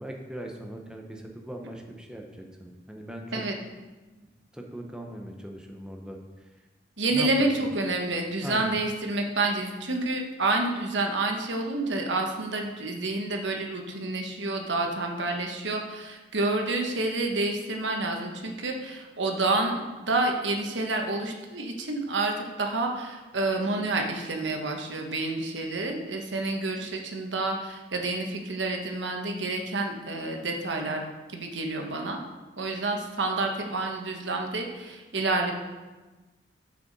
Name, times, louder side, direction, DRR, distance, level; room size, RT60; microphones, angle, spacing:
voice 1, 0.0-3.4 4.2-6.5 7.1-7.5 7.8-8.1 8.4-8.8, right 1 dB, 5° right, 1 dB, 0.7 m, -40 dB
voice 2, 7.0-31.0 31.3-32.2 32.6-35.5, right 2 dB, 85° right, 3 dB, 1.1 m, -29 dB
6.9 x 6.8 x 4.0 m, 1.2 s
head